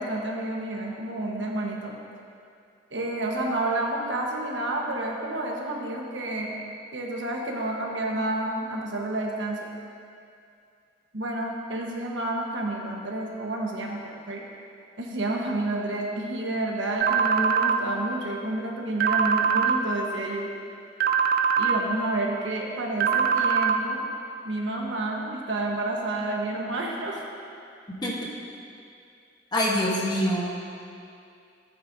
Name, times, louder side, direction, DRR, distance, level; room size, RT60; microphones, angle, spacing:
voice 1, 0.0-1.9 2.9-6.6 6.9-9.6 11.1-14.4 15.0-20.5 21.6-24.0 24.4-27.2, right 2 dB, 75° right, -1 dB, 1.3 m, -30 dB
sound 1, 17.0-17.8 19.0-19.8 21.0-21.8 23.0-23.8, right 7 dB, 50° right, 0.5 m, -22 dB
voice 2, 27.9-28.3 29.5-30.5, equal, 20° left, -4 dB, 1.2 m, -25 dB
14.0 x 8.8 x 2.7 m, 2.5 s
head